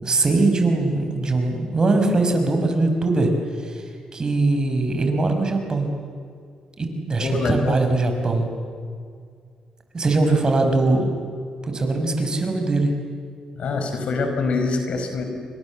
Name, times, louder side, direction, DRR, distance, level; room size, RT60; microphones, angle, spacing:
voice 1, 0.0-3.3 3.6-3.8 4.1-5.9 6.8-8.5 9.9-11.1 11.6-12.9, right 2 dB, 35° right, 5 dB, 5.4 m, -21 dB
voice 2, 7.2-7.8 13.6-15.2, left 3 dB, 65° left, 5 dB, 4.9 m, -25 dB
29.0 x 24.5 x 7.5 m, 2.2 s
cardioid pair, 80°, 2 cm